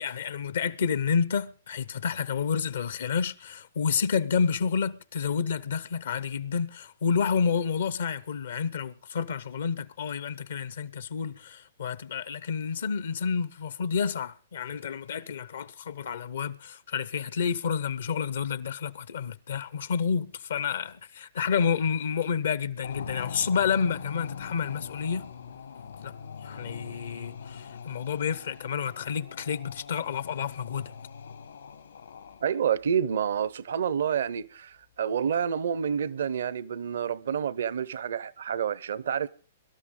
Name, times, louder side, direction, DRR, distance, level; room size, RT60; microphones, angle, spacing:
voice 1, 0.0-25.3 26.0-26.2 26.4-30.9, left 6 dB, 75° left, 0.8 m, -29 dB
sound 1, 22.8-32.7, left 6 dB, 90° left, 2.8 m, -43 dB
voice 2, 32.4-39.3, right 8 dB, 70° right, 0.7 m, -28 dB
23.5 x 12.5 x 3.7 m
hypercardioid pair, 125°, 0 cm